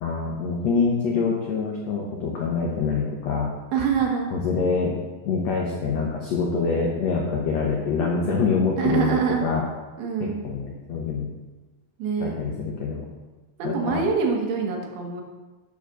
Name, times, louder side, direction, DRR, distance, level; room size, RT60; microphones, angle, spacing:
voice 1, 0.0-3.5 4.3-5.0 5.2-9.6 10.2-11.3 12.2-13.1 13.6-14.0, left 4 dB, 80° left, -1 dB, 1.5 m, -25 dB
voice 2, 3.7-4.3 8.8-9.5 10.0-10.4 12.0-12.3 13.6-15.2, right 6 dB, 75° right, 2 dB, 3.1 m, -25 dB
8.6 x 4.9 x 6.2 m, 1.2 s
omnidirectional pair, 4.6 m